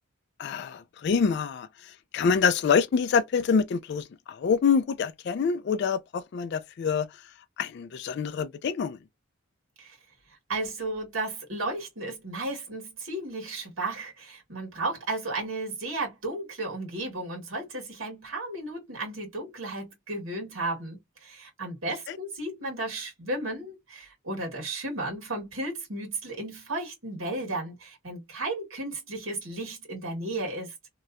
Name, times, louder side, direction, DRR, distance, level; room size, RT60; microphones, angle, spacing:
voice 1, 0.4-7.1 7.6-9.0 22.1-22.2, left 6 dB, 55° left, 0.3 m, -26 dB
voice 2, 10.5-30.7, right 2 dB, 70° right, 1.8 m, -34 dB
3.1 x 2.8 x 2.4 m
head